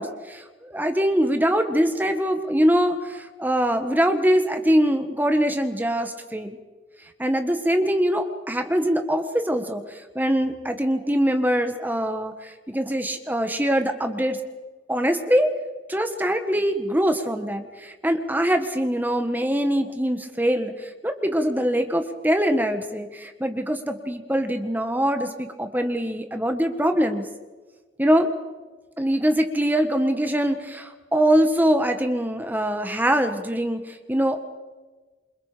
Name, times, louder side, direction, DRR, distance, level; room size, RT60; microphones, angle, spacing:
voice 1, 0.0-6.6 7.2-14.4 14.9-15.5 15.9-27.3 28.0-28.3 29.0-34.4, equal, 10° right, 7 dB, 1.6 m, -23 dB
28.0 x 25.0 x 5.1 m, 1.3 s
head